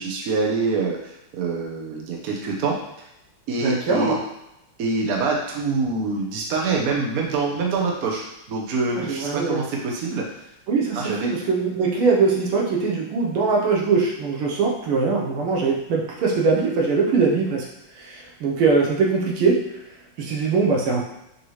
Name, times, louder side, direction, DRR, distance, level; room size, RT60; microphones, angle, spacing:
voice 1, 0.0-3.1 3.5-4.2 4.8-10.3 10.9-11.4, right 3 dB, 65° right, -1 dB, 0.9 m, -25 dB
voice 2, 3.6-4.2 9.0-9.6 10.7-17.7 18.0-19.6 20.2-21.0, right 4 dB, 90° right, -1 dB, 1.8 m, -21 dB
5.1 x 2.8 x 3.1 m, 0.86 s
omnidirectional pair, 2.3 m